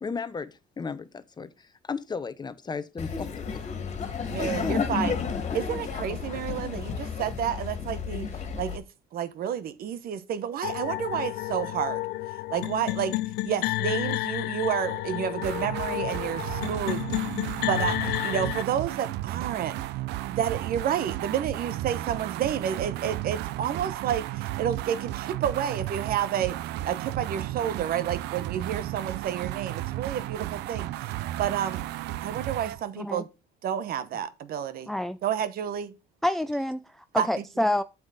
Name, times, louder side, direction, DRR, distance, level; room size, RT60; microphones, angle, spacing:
voice 1, 0.0-3.3 4.4-4.9 5.5-5.6, left 5 dB, 25° left, 0.8 m, -34 dB
Laughter, 3.0-8.8, left 6 dB, 40° left, 2.0 m, -32 dB
voice 2, 4.3-5.1 5.5-8.3 8.6-8.8 9.1-12.0 12.5-17.0 17.7-19.8 20.3-26.6 26.8-31.8 32.2-33.3 33.6-34.9 35.2-35.9 37.2-37.3, right 9 dB, 60° right, 1.0 m, -30 dB
sound 1, 10.6-18.6, left 18 dB, 75° left, 0.4 m, -31 dB
sound 2, 15.4-32.8, right 15 dB, 85° right, 0.5 m, -34 dB
voice 3, 34.9-35.2 36.2-37.8, left 1 dB, ahead, 0.4 m, -27 dB
8.5 x 7.2 x 4.0 m
cardioid pair, 110°, 17 cm